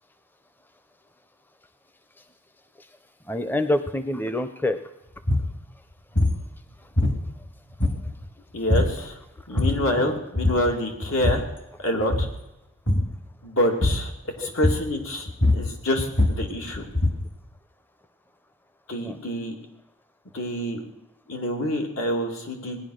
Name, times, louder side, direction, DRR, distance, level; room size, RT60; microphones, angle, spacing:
voice 1, 3.3-4.8 9.7-10.1 14.4-14.5 19.0-19.2, left 1 dB, 10° left, 10 dB, 0.6 m, -27 dB
sound 1, 5.2-5.5 6.2-6.5 7.0-7.5 7.8-8.3 8.7-9.0 9.4-9.9 10.4-10.7 11.0-11.6 12.0-12.4 12.9-13.2 13.8-14.2 14.6-15.0 15.3-17.3, left 2 dB, 60° left, 2.1 m, -23 dB
voice 2, 8.5-9.1 9.5-11.4 11.8-12.3 13.4-14.1 14.4-15.3 15.5-16.9 18.9-19.5 20.3-20.8 21.3-22.8, left 1 dB, 85° left, 2 dB, 2.6 m, -26 dB
19.0 x 10.5 x 6.5 m, 0.89 s
head